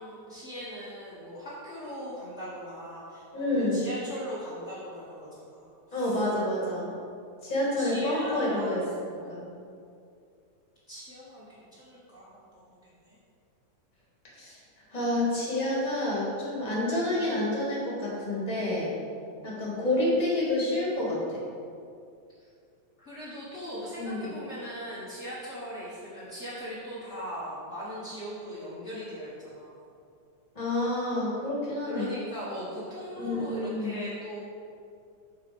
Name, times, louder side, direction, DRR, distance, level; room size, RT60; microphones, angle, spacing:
voice 1, 0.0-6.2 7.7-9.3 10.9-12.8 13.0-13.2 23.0-29.7 31.8-34.4, equal, 40° left, -10 dB, 1.0 m, -40 dB
voice 2, 3.3-3.8 5.9-6.9 7.4-8.8 9.3-9.5 14.4-14.6 14.9-18.9 19.4-21.4 24.0-24.3 30.5-32.1 33.2-34.0, left 1 dB, 15° left, -5 dB, 1.4 m, -28 dB
8.5 x 4.3 x 6.0 m, 2.4 s
omnidirectional pair, 3.4 m